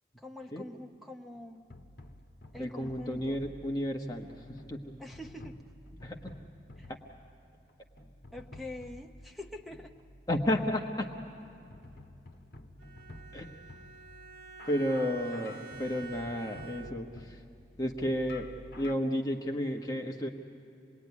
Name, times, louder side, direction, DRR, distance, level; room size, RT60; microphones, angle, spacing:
voice 1, 0.2-1.6 2.5-3.4 5.0-5.6 6.8-6.9 8.3-9.9, left 1 dB, ahead, 2 dB, 0.7 m, -45 dB
sound 1, 1.3-19.0, left 1 dB, 55° left, 1.3 m, -51 dB
voice 2, 2.6-5.0 6.0-6.3 10.3-11.1 13.3-13.5 14.7-17.4 17.8-18.5 18.8-20.3, left 1 dB, 20° left, 2 dB, 1.1 m, -32 dB
Bowed string instrument, 12.8-17.3, right 5 dB, 50° right, 0.7 m, -48 dB
27.0 x 20.5 x 9.6 m, 2.8 s
head